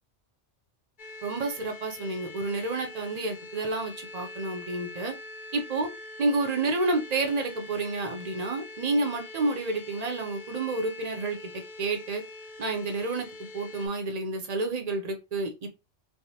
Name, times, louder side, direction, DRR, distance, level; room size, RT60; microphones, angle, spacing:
sound 1, 1.0-13.9, left 2 dB, 50° left, 0.7 m, -44 dB
voice 1, 1.2-5.1 5.5-5.9 6.2-12.2 12.6-13.3 13.5-15.7, right 2 dB, 50° right, 5 dB, 0.5 m, -30 dB
3.3 x 2.0 x 2.7 m, 0.26 s
omnidirectional pair, 1.2 m